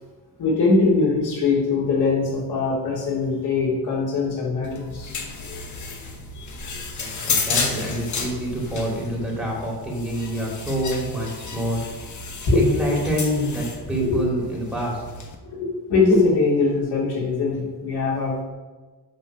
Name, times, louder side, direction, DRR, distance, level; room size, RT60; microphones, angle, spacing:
voice 1, 0.4-5.1 6.3-6.5 12.5-12.8 14.0-14.2 15.5-18.4, left 3 dB, 75° left, -6 dB, 2.8 m, -21 dB
sound 1, 4.6-15.3, left 4 dB, 45° left, 1.2 m, -32 dB
voice 2, 7.0-12.1 12.5-15.0, equal, 5° right, -4 dB, 2.5 m, -27 dB
9.3 x 3.7 x 6.0 m, 1.3 s
cardioid pair, 125°, 39 cm